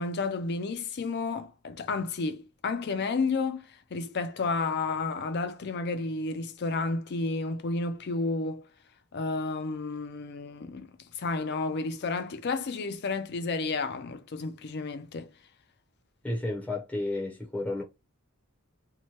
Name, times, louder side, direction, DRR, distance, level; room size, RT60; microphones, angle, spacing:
voice 1, 0.0-8.6 9.1-15.3, left 3 dB, 50° left, 0.5 m, -31 dB
voice 2, 16.2-17.8, left 2 dB, 5° left, 0.6 m, -32 dB
2.8 x 2.2 x 3.0 m
head